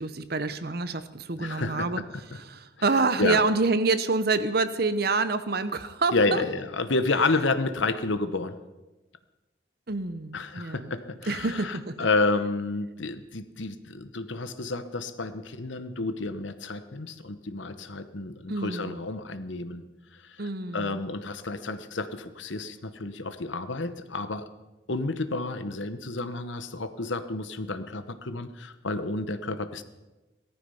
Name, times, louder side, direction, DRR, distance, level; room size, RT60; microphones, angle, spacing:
voice 1, 0.0-2.0 2.3-6.4 9.9-11.0 11.3-12.0 18.5-19.0 20.4-21.0, right 3 dB, 50° right, 12 dB, 0.9 m, -27 dB
voice 2, 1.4-2.2 2.9-3.4 6.1-8.5 10.3-19.8 20.2-24.5 24.9-29.8, left 3 dB, 75° left, 11 dB, 1.1 m, -30 dB
18.0 x 13.5 x 5.6 m, 1.1 s
head